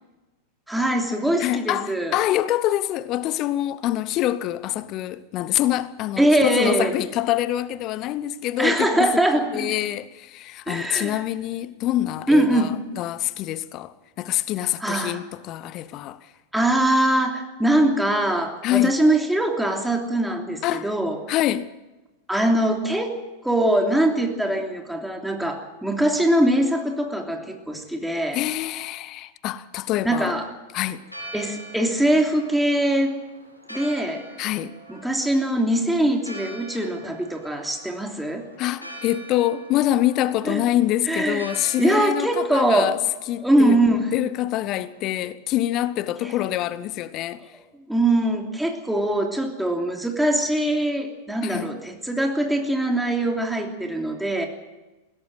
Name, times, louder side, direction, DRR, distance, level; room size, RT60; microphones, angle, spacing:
voice 1, 0.7-2.1 6.2-6.9 8.6-9.7 10.7-11.2 12.3-12.8 14.8-15.2 16.5-21.2 22.3-23.2 23.4-28.4 30.0-30.4 31.3-33.1 33.7-34.2 34.9-38.5 40.5-40.6 41.1-41.4 41.8-42.9 43.4-44.1 47.9-54.5, right 1 dB, 5° right, 3.1 m, -22 dB
voice 2, 1.4-16.3 18.6-19.0 20.6-20.9 21.3-21.7 28.3-30.4 30.7-31.0 34.4-34.7 38.6-43.0 43.3-43.8 44.1-47.4 51.4-51.7, left 14 dB, 35° left, 0.8 m, -25 dB
Church bell, 30.9-45.0, right 1 dB, 85° left, 4.8 m, -44 dB
21.0 x 17.0 x 7.9 m
figure-of-eight pair, 90°, 0 cm